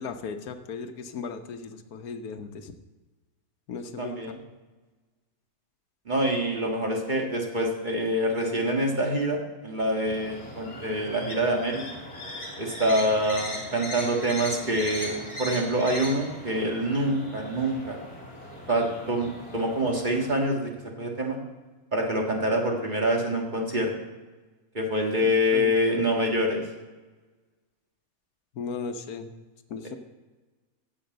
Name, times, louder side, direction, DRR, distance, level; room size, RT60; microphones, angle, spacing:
voice 1, 0.0-2.7 3.7-4.1 25.5-25.8 28.5-29.3 29.7-30.0, left 5 dB, 85° left, 7 dB, 1.4 m, -36 dB
voice 2, 4.0-4.4 6.1-11.8 12.6-18.0 18.7-20.7 21.0-21.4 21.9-23.9 24.7-26.6, equal, 35° right, 0 dB, 1.8 m, -26 dB
sound 1, 10.0-20.4, left 1 dB, 25° left, 2.8 m, -39 dB
15.0 x 5.1 x 7.8 m, 1.3 s
omnidirectional pair, 1.5 m